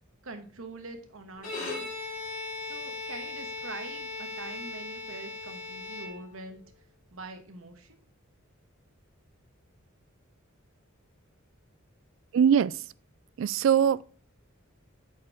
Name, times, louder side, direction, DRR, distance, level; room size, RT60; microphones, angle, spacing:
voice 1, 0.2-1.9 2.6-6.6 7.1-8.0, right 3 dB, 85° right, 1.2 m, -44 dB
Bowed string instrument, 1.3-6.6, left 3 dB, 40° left, 3.8 m, -38 dB
voice 2, 12.3-12.7 13.4-14.0, right 8 dB, 65° right, 0.3 m, -21 dB
8.4 x 4.4 x 3.6 m
head